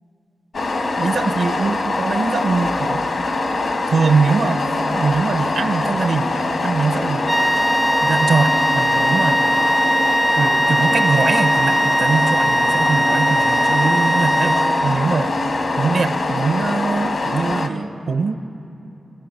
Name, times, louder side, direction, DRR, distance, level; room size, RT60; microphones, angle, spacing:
sound 1, 0.5-17.7, left 2 dB, 60° left, 1.0 m, -23 dB
voice 1, 1.0-3.1 3.9-7.2 8.0-9.4 10.3-15.4 15.8-18.3, right 4 dB, 85° right, 8 dB, 0.9 m, -22 dB
sound 2, 7.3-15.1, equal, 5° right, 0.4 m, -19 dB
26.0 x 15.5 x 6.6 m, 3.0 s
wide cardioid pair, 135°, 0 cm